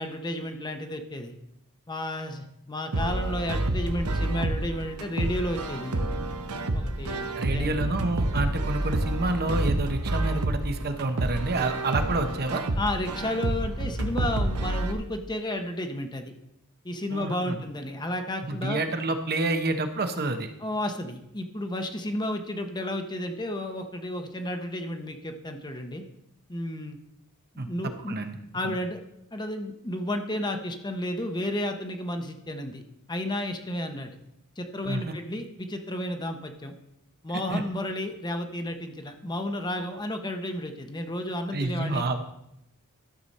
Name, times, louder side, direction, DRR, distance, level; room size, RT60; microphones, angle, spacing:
voice 1, 0.0-1.3 1.9-6.2 6.7-7.8 12.8-16.3 16.8-18.8 20.6-26.0 26.5-27.0 27.5-28.2 28.5-29.0 29.3-32.8 33.1-34.2 34.6-36.7 37.2-42.0, left 1 dB, 20° left, 6 dB, 0.9 m, -32 dB
sound 1, 2.9-14.9, right 1 dB, 90° right, 1.0 m, -29 dB
voice 2, 7.4-12.6 17.1-17.6 18.4-20.5 27.6-27.7 28.1-28.4 28.6-28.8 34.9-35.1 37.5-37.6 41.5-42.2, right 2 dB, 45° right, 7 dB, 0.9 m, -28 dB
13.0 x 6.8 x 4.2 m, 0.80 s
head